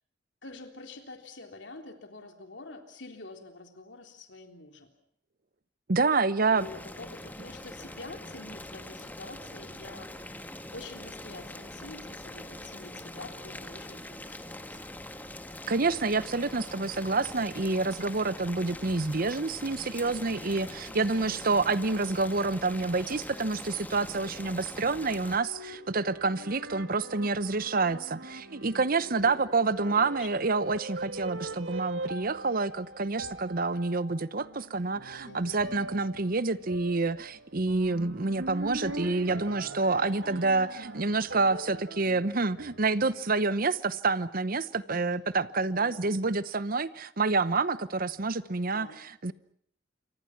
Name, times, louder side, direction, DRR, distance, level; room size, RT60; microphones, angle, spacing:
voice 1, 0.4-4.9 6.5-10.4 10.7-14.8 20.9-21.3 29.2-29.4 29.9-30.3 35.3-35.6 44.9-45.2 45.7-46.2 48.6-49.0, left 2 dB, 65° left, 5 dB, 3.6 m, -47 dB
voice 2, 5.9-6.7 15.7-48.9 49.2-49.3, right 3 dB, 50° right, 16 dB, 0.9 m, -28 dB
Boiling, 6.6-25.4, left 1 dB, 10° left, 1.7 m, -43 dB
sound 1, 24.7-43.3, right 1 dB, 80° right, 2.3 m, -42 dB
28.5 x 24.5 x 6.0 m, 0.68 s
head